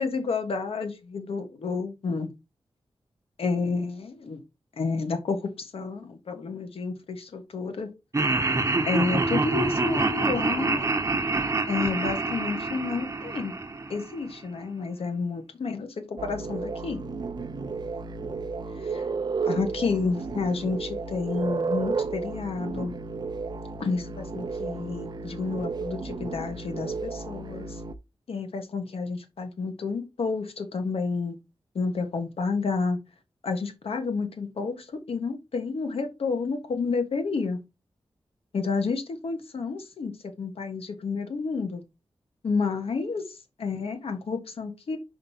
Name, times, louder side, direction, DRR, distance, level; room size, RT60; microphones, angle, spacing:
voice 1, 0.0-2.3 3.4-4.4 4.8-7.9 8.9-10.9 11.7-13.5 13.9-17.0 18.8-19.1 19.5-22.9 23.8-27.8 28.3-31.4 31.7-33.0 33.4-37.6 38.5-41.8 42.4-45.0, left 4 dB, 80° left, 1.5 m, -30 dB
Laughter, 8.1-14.3, right 3 dB, 30° right, 1.0 m, -26 dB
sound 1, 16.2-27.9, right 4 dB, 45° right, 0.5 m, -33 dB
5.2 x 5.2 x 4.4 m
wide cardioid pair, 155°, 10 cm